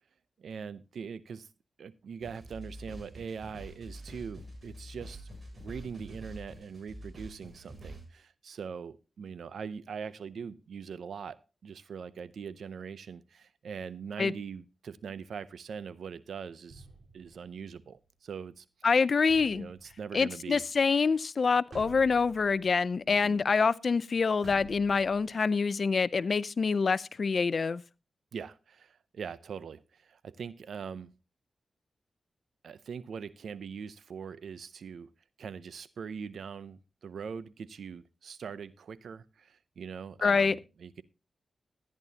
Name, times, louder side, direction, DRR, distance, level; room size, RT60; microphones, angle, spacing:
voice 1, 0.4-1.5 1.8-16.9 17.1-18.6 19.5-20.6 23.1-23.4 28.3-31.1 32.6-35.1 35.4-41.0, right 6 dB, 80° right, 0.6 m, -42 dB
sound 1, 2.2-8.1, right 1 dB, 45° right, 7.8 m, -46 dB
sound 2, 16.7-18.1 19.3-20.7 21.7-23.2 24.4-25.3, right 4 dB, 65° right, 3.9 m, -52 dB
voice 2, 18.8-19.7 20.1-27.8 40.2-40.6, left 5 dB, 60° left, 0.5 m, -26 dB
15.0 x 10.5 x 2.8 m
cardioid pair, 50°, 0 cm